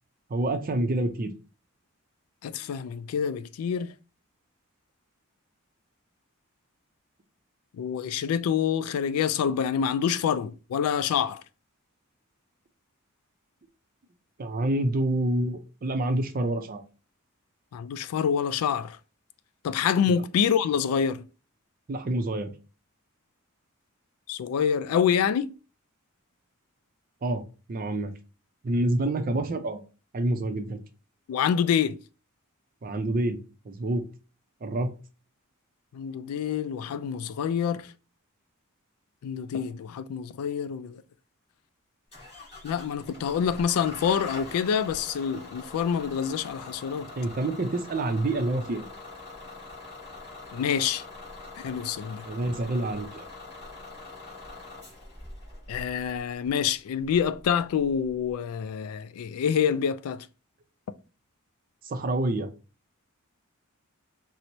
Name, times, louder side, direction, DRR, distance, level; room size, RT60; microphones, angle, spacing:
voice 1, 0.3-1.3 14.4-16.8 20.1-20.2 21.9-22.5 27.2-27.4 27.7-28.1 28.6-29.8 30.1-30.8 32.8-33.4 33.6-34.0 34.6-34.9 47.2-48.8 52.3-53.3 61.8-62.5, right 1 dB, 40° right, 0.5 m, -27 dB
voice 2, 2.4-3.9 7.7-11.4 17.7-19.0 19.6-21.3 24.3-25.5 31.3-32.0 35.9-37.9 39.2-41.0 42.6-47.1 50.5-51.0 51.6-52.3 55.7-60.3, left 7 dB, 80° left, 0.3 m, -27 dB
Bus / Engine starting, 42.1-58.3, left 3 dB, 30° left, 1.8 m, -44 dB
4.4 x 2.0 x 2.7 m
head